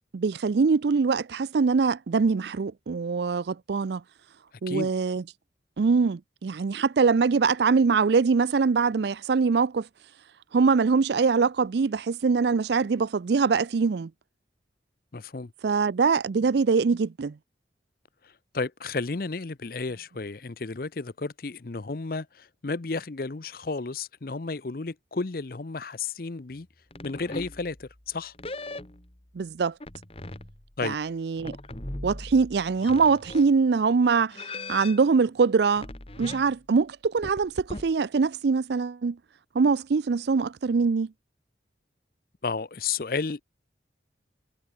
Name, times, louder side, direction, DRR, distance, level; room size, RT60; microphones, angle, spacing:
voice 1, 0.1-4.0 4.6-5.2 5.8-9.9 10.5-14.1 15.6-17.4 29.3-29.7 30.8-31.5 32.0-34.4 34.7-35.9 36.2-39.2 39.5-41.1, right 5 dB, 65° right, 0.4 m, -23 dB
voice 2, 15.1-15.5 18.2-26.7 27.0-28.3 30.8-31.0 42.4-43.4, left 4 dB, 50° left, 0.7 m, -32 dB
sound 1, 26.9-28.0 28.3-29.3 29.8-30.8 31.4-33.5 34.3-35.1 35.8-36.6 37.2-37.9, left 2 dB, 30° left, 1.9 m, -39 dB
head